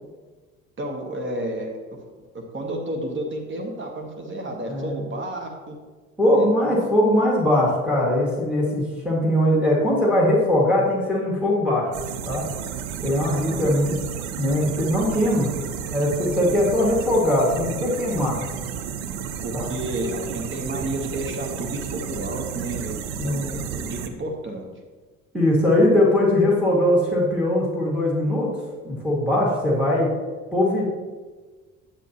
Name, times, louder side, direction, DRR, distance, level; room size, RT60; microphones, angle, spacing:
voice 1, 0.8-1.7 2.3-5.8 6.3-6.5 13.3-13.8 19.4-24.6, right 1 dB, 30° right, 1 dB, 1.4 m, -31 dB
voice 2, 6.2-11.9 12.3-12.5 13.0-14.0 14.4-15.5 15.9-18.4 19.5-19.7 23.2-23.5 25.3-28.5 28.8-30.1 30.5-30.8, left 1 dB, 5° right, -3 dB, 2.1 m, -20 dB
sound 1, 11.9-24.1, right 8 dB, 60° right, 0.7 m, -32 dB
9.6 x 7.1 x 3.0 m, 1.4 s
figure-of-eight pair, 55°, 41 cm